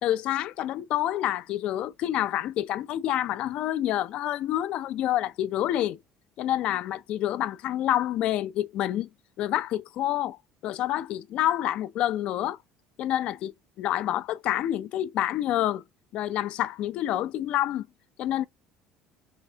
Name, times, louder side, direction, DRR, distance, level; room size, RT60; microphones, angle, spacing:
voice 1, 0.0-6.0 6.4-9.1 9.4-12.6 13.0-15.8 16.1-17.9 18.2-18.4, left 13 dB, 60° left, 0.4 m, -28 dB
5.7 x 2.8 x 2.8 m
cardioid pair, 115°, 2 cm